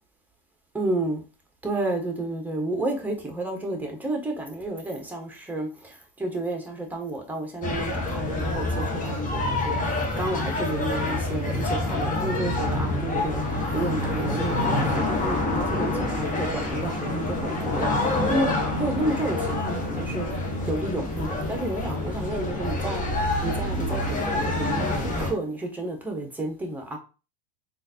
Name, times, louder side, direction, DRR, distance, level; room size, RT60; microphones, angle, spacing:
voice 1, 0.7-1.2 1.6-17.9 18.3-20.3 20.7-23.0 23.4-27.0, right 1 dB, 5° right, 1.0 m, -31 dB
sound 1, 7.6-25.3, left 2 dB, 25° left, 1.0 m, -27 dB
3.7 x 2.6 x 2.7 m
hypercardioid pair, 95°, 30 cm